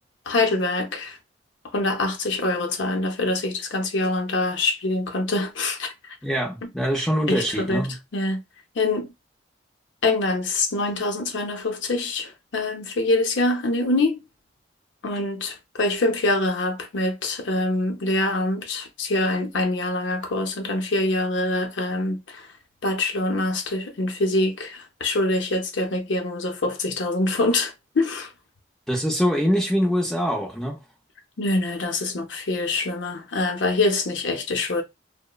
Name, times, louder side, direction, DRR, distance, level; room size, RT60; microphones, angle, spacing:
voice 1, 0.3-1.2 1.7-6.2 7.3-7.9 8.1-8.4 8.8-9.1 10.0-14.2 15.0-22.5 22.8-28.3 31.4-34.8, left 2 dB, 75° left, 0.6 m, -25 dB
voice 2, 6.2-8.0 28.9-30.8, equal, ahead, 0.4 m, -24 dB
2.9 x 2.1 x 2.2 m
head